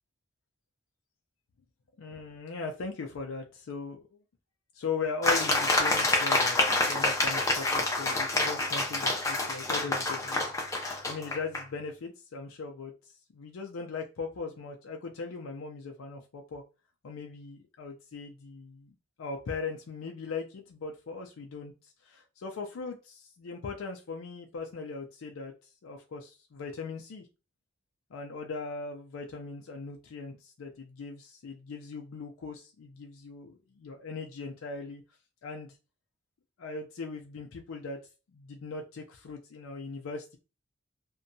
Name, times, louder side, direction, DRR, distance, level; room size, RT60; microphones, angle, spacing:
voice 1, 2.0-4.2 4.7-10.5 10.8-16.6 17.0-25.5 25.8-27.3 28.1-35.0 35.4-35.8 36.6-38.0 38.3-40.4, left 4 dB, 85° left, 2 dB, 0.4 m, -39 dB
sound 1, 5.2-11.6, left 2 dB, 15° left, 0.4 m, -27 dB
2.7 x 2.2 x 2.6 m, 0.31 s
head